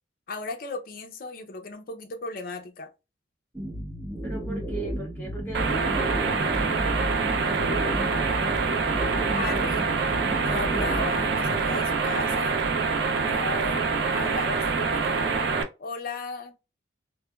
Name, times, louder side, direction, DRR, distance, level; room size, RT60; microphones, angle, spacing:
voice 1, 0.3-2.9 9.3-9.9 10.4-12.6 13.2-13.8 14.1-15.5 15.8-16.6, left 3 dB, 50° left, 0.5 m, -36 dB
sound 1, 3.5-11.6, equal, 15° right, 0.9 m, -33 dB
voice 2, 4.2-8.9, right 2 dB, 10° left, 1.0 m, -39 dB
sound 2, 5.5-15.6, right 4 dB, 65° right, 0.4 m, -25 dB
3.2 x 2.1 x 2.2 m
head